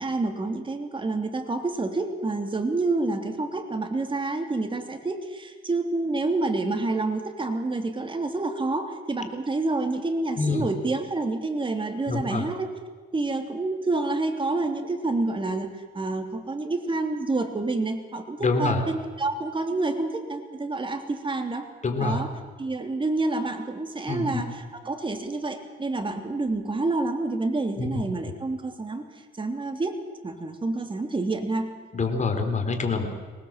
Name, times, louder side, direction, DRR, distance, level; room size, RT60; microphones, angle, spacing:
voice 1, 0.0-12.7 13.1-21.7 22.0-22.3 22.6-31.7, right 2 dB, 25° right, 5 dB, 3.1 m, -28 dB
voice 2, 10.4-10.7 12.1-12.4 18.4-18.8 21.8-22.2 24.1-24.4 27.8-27.9 31.9-33.1, left 4 dB, 35° left, 5 dB, 3.9 m, -26 dB
24.0 x 19.5 x 7.5 m, 1.4 s
cardioid pair, 90°, 20 cm